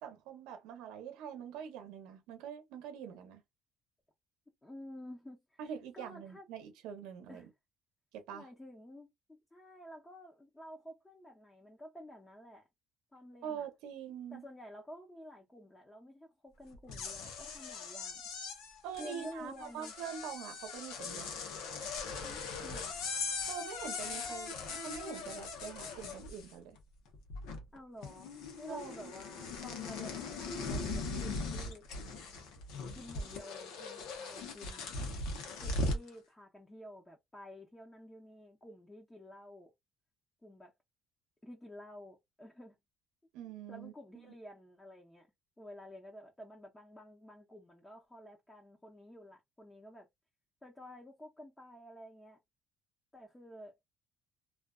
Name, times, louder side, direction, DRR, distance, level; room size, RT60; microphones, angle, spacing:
voice 1, 0.0-3.4 5.6-7.5 8.1-8.5 13.4-14.4 18.8-21.3 23.5-26.8 28.7-29.1 43.3-44.3, right 8 dB, 85° right, 0.7 m, -44 dB
voice 2, 4.6-5.6 5.9-6.5 7.3-7.5 8.3-12.7 13.1-13.7 14.3-18.2 19.0-19.9 22.2-23.0 24.2-24.3 27.7-28.3 28.6-31.9 32.9-34.9 35.6-39.7 40.4-40.7 41.4-42.8 43.7-45.3 45.6-50.1 50.6-52.4 53.1-53.8, left 1 dB, 15° left, 0.7 m, -51 dB
sound 1, 16.7-26.8 27.1-27.8 28.0-36.1, left 3 dB, 85° left, 0.7 m, -40 dB
2.4 x 2.3 x 2.2 m
supercardioid pair, 85°, 0 cm